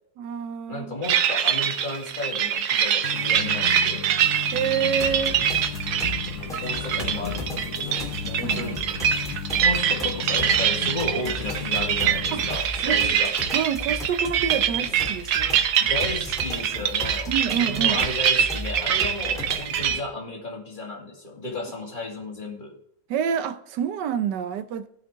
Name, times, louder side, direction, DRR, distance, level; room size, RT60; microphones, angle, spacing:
voice 1, 0.2-1.0 4.5-5.4 8.4-8.8 12.3-12.4 12.8-13.2 13.5-15.6 17.3-18.0 23.1-24.9, right 7 dB, 90° right, 1.4 m, -28 dB
voice 2, 0.7-4.1 6.6-8.8 9.6-13.3 15.7-22.8, left 2 dB, 30° left, 2.6 m, -34 dB
sound 1, 1.0-20.0, right 9 dB, 70° right, 1.3 m, -24 dB
sound 2, 3.0-12.6, left 8 dB, 55° left, 1.0 m, -35 dB
sound 3, 5.0-20.0, left 1 dB, ahead, 2.7 m, -37 dB
17.5 x 6.2 x 3.5 m
omnidirectional pair, 1.8 m